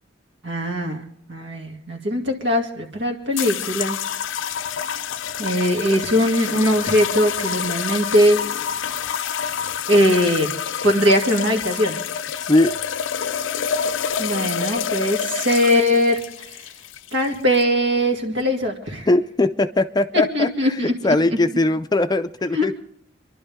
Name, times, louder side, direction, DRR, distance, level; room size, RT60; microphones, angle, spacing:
voice 1, 0.4-4.0 5.4-8.4 9.9-10.5 10.8-12.0 14.2-16.2 17.1-19.1 20.3-20.9 22.5-22.8, equal, 70° right, 2 dB, 2.4 m, -20 dB
sound 1, 3.4-17.6, left 8 dB, 80° left, 0.5 m, -27 dB
voice 2, 12.4-12.8 19.1-22.7, left 2 dB, 20° left, 10 dB, 0.5 m, -20 dB
27.5 x 11.5 x 3.6 m, 0.72 s
head